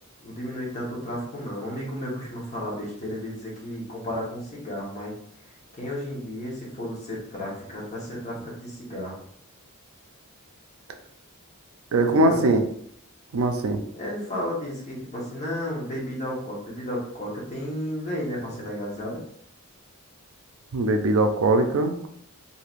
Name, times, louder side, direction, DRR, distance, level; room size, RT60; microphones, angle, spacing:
voice 1, 0.2-5.1 5.7-9.2 12.1-12.4 14.0-19.2, equal, 30° left, -4 dB, 1.0 m, -33 dB
voice 2, 11.9-12.6 13.3-13.8 20.7-22.1, right 2 dB, 65° right, 6 dB, 0.4 m, -21 dB
3.2 x 2.7 x 2.4 m, 0.68 s
head